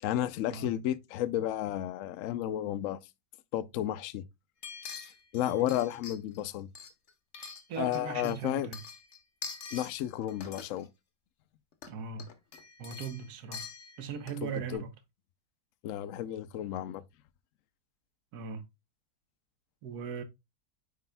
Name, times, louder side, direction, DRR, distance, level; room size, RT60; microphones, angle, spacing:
voice 1, 0.0-3.0 3.5-4.2 5.3-6.7 7.8-8.7 9.7-10.9 14.4-14.8 15.8-17.0, left 12 dB, 85° left, 0.7 m, -32 dB
sound 1, 4.6-6.4 6.7-8.0 8.2-9.9 10.3-10.8 11.7-11.9 12.2-14.5 14.7-14.8, left 6 dB, 50° left, 0.9 m, -45 dB
voice 2, 5.4-5.8 7.7-8.8 11.9-12.3 12.8-13.7 14.0-14.9 18.3-18.6 19.8-20.2, right 6 dB, 60° right, 1.4 m, -39 dB
9.5 x 5.0 x 2.2 m
omnidirectional pair, 2.0 m